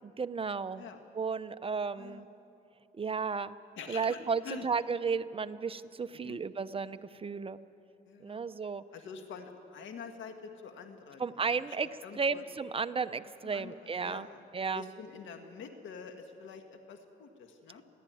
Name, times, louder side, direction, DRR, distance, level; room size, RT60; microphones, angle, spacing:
voice 1, 0.0-0.9 1.1-2.3 3.0-3.6 3.9-7.6 8.2-8.8 11.2-11.9 12.2-14.3 14.5-14.9, right 5 dB, 30° right, 12 dB, 0.7 m, -33 dB
voice 2, 3.8-4.7 6.1-6.4 8.0-8.4 8.9-11.8 12.0-12.4 13.4-14.4 14.7-17.8, left 6 dB, 75° left, 6 dB, 1.7 m, -46 dB
30.0 x 12.0 x 9.4 m, 2.8 s
cardioid pair, 90°, 20 cm